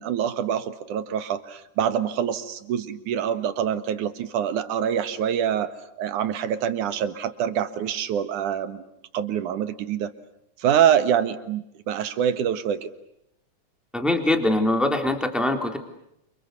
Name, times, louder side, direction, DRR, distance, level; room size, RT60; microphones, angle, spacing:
voice 1, 0.0-8.8 9.1-10.1 10.6-12.9, right 9 dB, 90° right, 12 dB, 3.1 m, -25 dB
voice 2, 13.9-15.8, left 1 dB, ahead, 6 dB, 3.4 m, -22 dB
30.0 x 29.0 x 6.9 m, 0.78 s
omnidirectional pair, 3.5 m